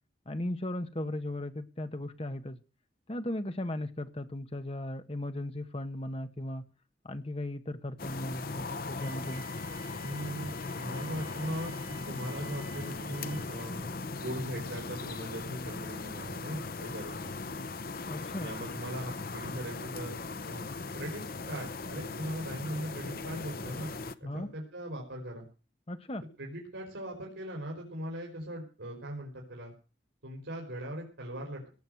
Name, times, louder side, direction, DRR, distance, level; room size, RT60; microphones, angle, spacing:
voice 1, 0.2-2.6 3.1-6.7 7.0-9.4 18.1-18.5 24.2-24.5 25.9-26.2, left 1 dB, 30° left, 9 dB, 1.3 m, -37 dB
sound 1, 8.0-24.1, left 3 dB, 50° left, 0.8 m, -39 dB
Wind instrument woodwind instrument, 8.9-13.8, equal, 60° right, 4.0 m, -52 dB
voice 2, 10.0-14.0 14.2-17.3 18.4-20.7 20.9-23.9 24.2-25.5 26.4-29.7 30.2-31.6, equal, 85° right, 0 dB, 4.5 m, -40 dB
18.0 x 6.5 x 7.7 m, 0.35 s
head